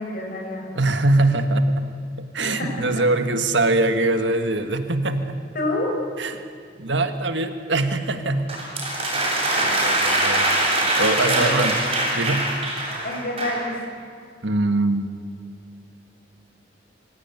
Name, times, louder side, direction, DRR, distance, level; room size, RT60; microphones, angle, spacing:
voice 1, 0.0-0.7 2.4-2.7 5.5-5.9 11.3-11.5 13.0-13.7, left 1 dB, 50° left, 0 dB, 5.8 m, -27 dB
voice 2, 0.7-1.9 2.2-5.4 6.2-6.5 6.8-8.7 9.1-10.5 10.8-11.7 12.1-12.5 14.4-15.1, right 2 dB, 80° right, 8 dB, 1.6 m, -23 dB
sound 1, 8.5-13.7, right 1 dB, 30° right, 7.3 m, -23 dB
25.0 x 16.0 x 9.3 m, 2.2 s
head